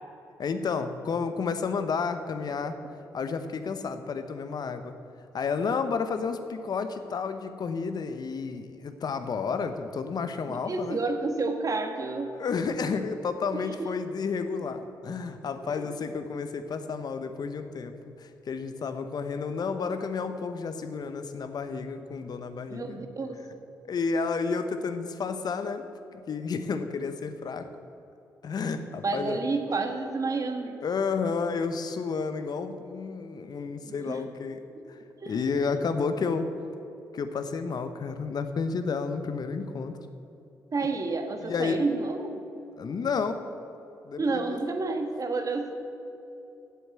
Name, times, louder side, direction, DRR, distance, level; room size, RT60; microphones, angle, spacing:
voice 1, 0.4-2.8 3.1-4.9 5.3-11.0 12.4-23.0 23.9-25.9 26.1-27.7 28.4-29.4 30.8-35.0 35.3-36.5 37.1-39.9 41.4-41.8 42.8-43.4 44.0-44.6, left 5 dB, 55° left, 9 dB, 0.9 m, -31 dB
voice 2, 10.5-12.4 13.5-13.9 15.6-16.0 22.7-23.4 29.0-30.8 33.8-34.2 35.0-35.7 40.7-42.4 44.2-45.8, right 3 dB, 45° right, 6 dB, 1.4 m, -30 dB
8.0 x 8.0 x 8.0 m, 2.8 s
supercardioid pair, 50°, 8 cm